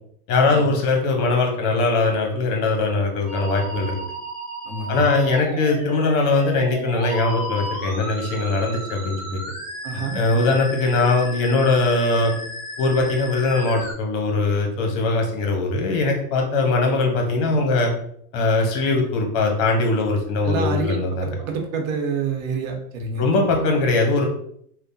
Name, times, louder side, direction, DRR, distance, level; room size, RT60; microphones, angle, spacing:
voice 1, 0.3-4.0 4.9-9.4 10.1-12.4 12.8-17.9 18.3-21.3 23.2-24.3, left 3 dB, 55° left, 2 dB, 0.9 m, -21 dB
Musical instrument, 3.3-13.9, equal, 20° right, 1.1 m, -34 dB
voice 2, 4.6-5.1 9.8-10.5 20.4-23.3, right 4 dB, 60° right, 3 dB, 0.8 m, -28 dB
2.8 x 2.1 x 2.6 m, 0.66 s
supercardioid pair, 120°, 45 cm